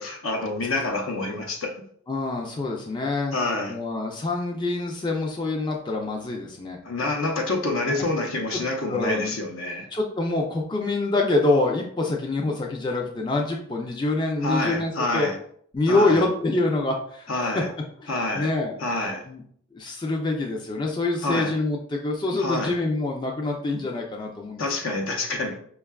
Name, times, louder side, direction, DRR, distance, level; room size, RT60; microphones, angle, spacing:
voice 1, 0.0-1.7 3.3-3.8 6.8-9.9 14.4-15.4 15.9-16.2 17.3-17.7 18.1-18.5 18.8-19.2 21.2-21.5 22.4-22.7 24.6-25.6, left 2 dB, 75° left, 3 dB, 0.7 m, -27 dB
voice 2, 2.1-3.4 3.7-6.8 7.8-7.9 8.5-8.6 8.9-9.3 9.9-15.3 15.7-17.7 18.0-18.8 19.3-19.4 19.7-24.6, left 2 dB, 20° left, 0 dB, 0.4 m, -26 dB
5.4 x 2.3 x 2.2 m, 0.62 s
head